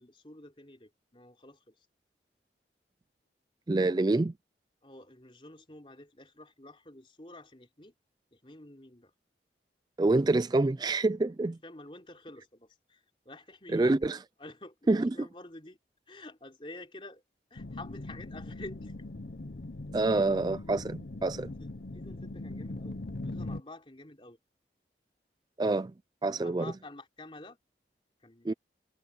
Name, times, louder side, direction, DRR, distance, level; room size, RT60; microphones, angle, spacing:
voice 1, 0.0-1.7 4.8-7.9 8.3-9.1 11.6-14.0 14.4-15.8 16.1-17.2 17.5-18.9 21.9-24.4 26.4-27.6 28.2-28.6, left 2 dB, 30° left, 3.5 m, -49 dB
voice 2, 3.7-4.3 10.0-11.6 13.7-14.2 14.9-15.1 19.9-21.5 25.6-25.9 26.2-26.7 28.5-28.6, right 2 dB, 25° right, 0.3 m, -26 dB
sound 1, 17.6-23.6, left 2 dB, 60° left, 0.8 m, -40 dB
head